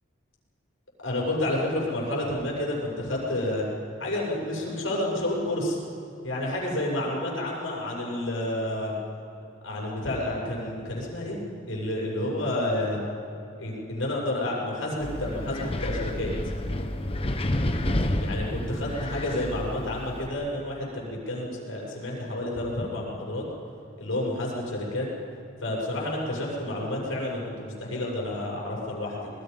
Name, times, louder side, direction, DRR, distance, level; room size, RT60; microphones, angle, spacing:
voice 1, 1.0-3.7 4.0-5.8 6.2-9.0 9.6-11.4 11.7-13.1 13.6-16.3 18.2-23.4 24.0-25.1 25.6-29.3, left 1 dB, 75° left, -3 dB, 6.8 m, -30 dB
Wind, 15.0-20.3, left 1 dB, 30° left, 1.2 m, -30 dB
27.0 x 21.0 x 5.4 m, 2.8 s
head